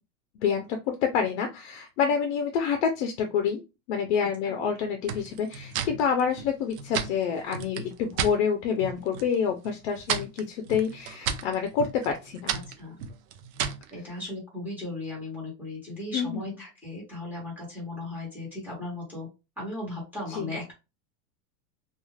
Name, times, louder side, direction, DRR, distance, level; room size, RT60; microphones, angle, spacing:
voice 1, 0.4-3.6 3.9-12.5 16.1-16.6 20.3-20.5, left 7 dB, 45° left, 5 dB, 0.5 m, -27 dB
sound 1, 5.1-8.4 8.8-9.3 9.6-13.9, right 7 dB, 60° right, 0.6 m, -33 dB
voice 2, 13.9-19.3 19.6-20.7, left 2 dB, 5° right, -3 dB, 1.1 m, -36 dB
2.4 x 2.3 x 3.1 m, 0.27 s
supercardioid pair, 165°, 48 cm